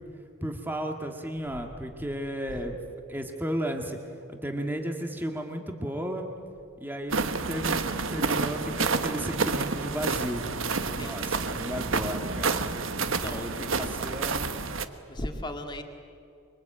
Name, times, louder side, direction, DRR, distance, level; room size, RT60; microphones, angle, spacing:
voice 1, 0.4-2.8 3.1-4.0 4.3-6.3 6.8-12.7 13.2-14.6, equal, 10° right, 3 dB, 1.8 m, -34 dB
sound 1, 7.1-14.8, right 4 dB, 65° right, 1.3 m, -29 dB
voice 2, 11.0-11.4 13.2-13.5 14.4-14.6 15.1-15.8, left 1 dB, 20° left, 4 dB, 2.1 m, -37 dB
25.5 x 23.5 x 9.0 m, 2.5 s
head